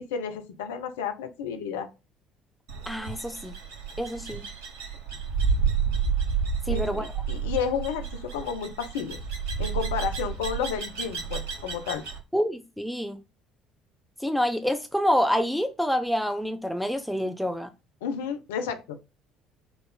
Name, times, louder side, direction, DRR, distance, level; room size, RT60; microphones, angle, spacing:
voice 1, 0.0-1.9 6.7-7.0 7.3-9.2 9.6-12.0 18.0-19.0, left 7 dB, 75° left, 0.5 m, -31 dB
sound 1, 2.7-12.2, right 6 dB, 75° right, 1.2 m, -30 dB
voice 2, 2.9-3.5 4.0-4.5 6.6-7.1 12.3-13.2 14.2-17.7, equal, ahead, 0.5 m, -27 dB
4.6 x 2.5 x 3.7 m
figure-of-eight pair, 55°, 0 cm